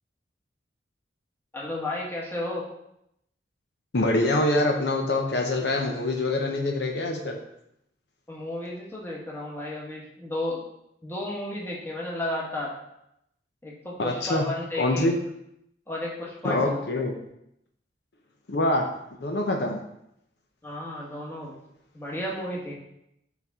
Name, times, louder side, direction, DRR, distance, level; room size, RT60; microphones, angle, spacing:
voice 1, 1.5-2.6 8.3-10.6 11.0-12.7 13.6-15.1 15.9-16.8 20.6-21.5 21.9-22.7, left 1 dB, 15° left, -4 dB, 1.4 m, -33 dB
voice 2, 3.9-7.4 14.0-14.4 14.8-15.2 16.4-17.1 18.5-18.9 19.2-19.8, left 2 dB, 65° left, 2 dB, 0.7 m, -25 dB
7.0 x 4.1 x 3.6 m, 0.79 s
head